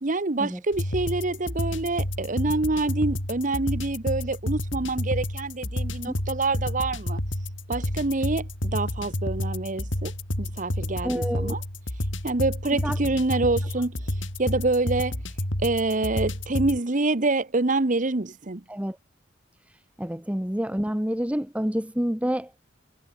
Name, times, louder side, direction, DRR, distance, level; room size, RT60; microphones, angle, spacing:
voice 1, 0.0-7.2 7.7-10.1 10.4-11.6 12.2-14.1 14.4-15.2 15.6-18.6, right 2 dB, 40° right, 1.0 m, -26 dB
sound 1, 0.7-16.8, left 1 dB, 70° left, 7.2 m, -30 dB
voice 2, 11.0-11.5 12.8-13.0 18.7-19.0 19.7-22.5, equal, 5° right, 1.0 m, -28 dB
head